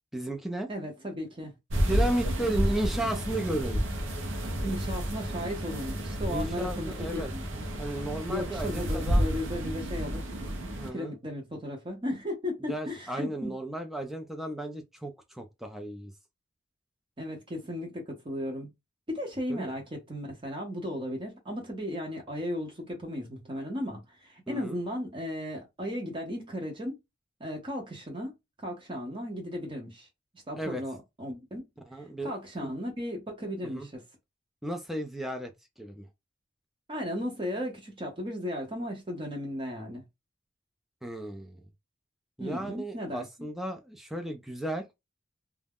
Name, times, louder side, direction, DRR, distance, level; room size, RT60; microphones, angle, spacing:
voice 1, 0.1-0.7 1.8-3.8 6.3-7.3 7.8-9.3 10.8-11.2 12.7-16.1 19.5-19.7 24.5-24.8 30.5-30.8 31.9-32.7 33.7-33.9 34.6-35.5 35.8-36.0 41.0-41.6 42.4-44.8, right 1 dB, ahead, 0.3 m, -34 dB
voice 2, 0.7-1.5 4.6-7.7 8.3-10.2 10.9-13.5 17.2-18.7 19.1-27.0 27.4-30.1 30.5-31.6 32.0-34.0 36.9-40.0 42.4-43.3, equal, 25° right, 0.7 m, -35 dB
sound 1, 1.7-10.9, equal, 70° right, 0.7 m, -31 dB
2.3 x 2.1 x 3.4 m
head